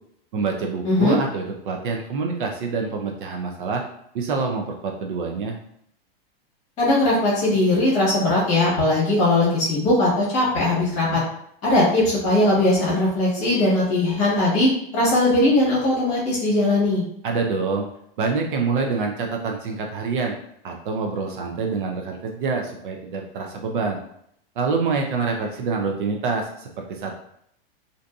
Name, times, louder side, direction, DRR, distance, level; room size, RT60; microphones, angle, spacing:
voice 1, 0.3-3.8 4.1-5.6 17.2-17.9 18.2-20.3 20.6-24.0 24.6-27.2, right 4 dB, 55° right, 2 dB, 0.5 m, -26 dB
voice 2, 0.8-1.2 6.8-11.2 11.6-17.0, left 2 dB, 25° left, -7 dB, 1.1 m, -19 dB
2.6 x 2.5 x 2.3 m, 0.71 s
supercardioid pair, 160°, 30 cm